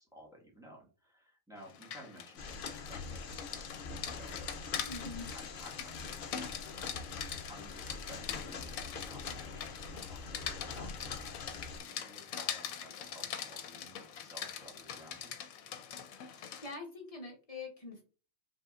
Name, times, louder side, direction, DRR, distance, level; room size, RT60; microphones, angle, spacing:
voice 1, 0.0-15.3, equal, 5° right, -4 dB, 1.3 m, -55 dB
Rain, 1.6-16.8, left 8 dB, 85° left, 1.0 m, -43 dB
sound 1, 2.4-11.8, left 4 dB, 55° left, 0.7 m, -44 dB
voice 2, 4.8-5.3 16.2-18.0, left 3 dB, 25° left, -1 dB, 1.2 m, -45 dB
5.6 x 3.3 x 2.4 m, 0.36 s
omnidirectional pair, 1.4 m